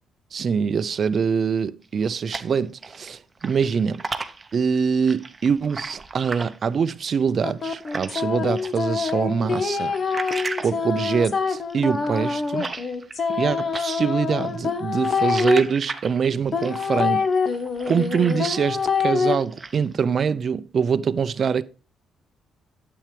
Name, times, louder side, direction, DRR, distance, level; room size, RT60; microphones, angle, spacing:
voice 1, 0.3-4.0 4.5-9.9 10.6-12.7 13.3-17.3 17.9-21.6, right 6 dB, 50° right, 0.5 m, -24 dB
sound 1, 1.8-3.1 3.4-8.2 8.6-13.5 13.7-18.8 19.2-19.9, right 3 dB, 25° right, 0.8 m, -36 dB
sound 2, 7.4-15.6 16.5-19.3, left 5 dB, 45° left, 1.2 m, -25 dB
9.3 x 7.9 x 3.3 m
cardioid pair, 90°, 0 cm